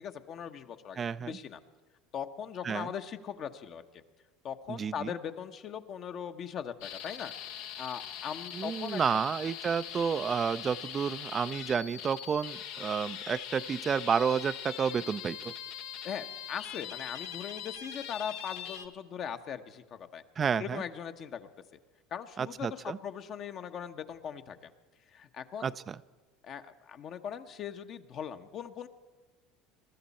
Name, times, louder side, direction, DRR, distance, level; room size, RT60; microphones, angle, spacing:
voice 1, 0.0-1.6 2.1-4.0 4.4-7.3 7.8-9.0 16.0-20.2 20.6-21.5 22.1-24.7 25.1-25.7 26.4-28.9, left 8 dB, 50° left, 8 dB, 1.0 m, -40 dB
voice 2, 1.0-1.4 2.6-2.9 4.7-5.1 8.5-15.5 20.4-20.8 22.4-23.0 25.6-26.0, right 6 dB, 35° right, 14 dB, 0.4 m, -31 dB
sound 1, 6.8-18.9, left 9 dB, 75° left, 0.9 m, -42 dB
22.0 x 13.0 x 4.2 m, 1.4 s
hypercardioid pair, 85°, 0 cm